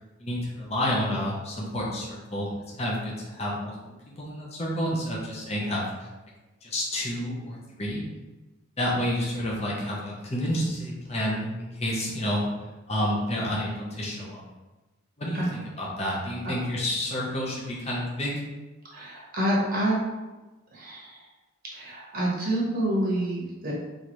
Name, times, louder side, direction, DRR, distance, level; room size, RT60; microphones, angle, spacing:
voice 1, 0.2-3.8 4.2-5.8 6.6-8.0 8.8-12.4 12.9-14.4 15.2-18.4, equal, 30° left, -4 dB, 0.9 m, -29 dB
voice 2, 18.9-20.0 20.7-21.2 21.7-23.7, right 1 dB, 45° right, -5 dB, 1.2 m, -28 dB
4.5 x 3.3 x 3.1 m, 1.1 s
head